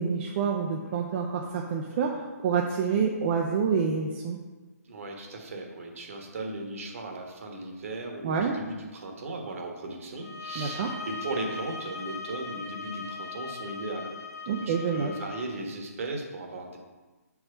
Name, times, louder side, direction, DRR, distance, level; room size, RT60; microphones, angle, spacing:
voice 1, 0.0-4.4 8.2-8.5 10.6-10.9 14.5-15.1, right 6 dB, 40° right, 0 dB, 0.6 m, -27 dB
voice 2, 4.8-14.1 14.4-16.8, right 2 dB, 55° right, 2 dB, 1.3 m, -37 dB
sound 1, 10.2-15.5, left 4 dB, 70° left, 0.9 m, -39 dB
4.7 x 4.2 x 5.5 m, 1.3 s
figure-of-eight pair, 135°, 9 cm